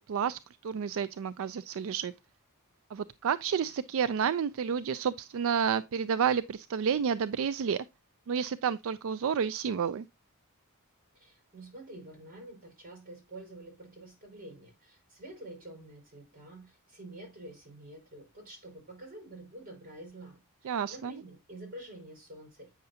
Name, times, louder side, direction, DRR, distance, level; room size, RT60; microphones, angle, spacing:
voice 1, 0.0-2.1 2.9-7.8 8.3-10.1 20.6-21.1, right 7 dB, 65° right, 0.4 m, -30 dB
voice 2, 11.1-22.7, right 1 dB, 40° right, 5.6 m, -48 dB
8.6 x 6.6 x 2.8 m
head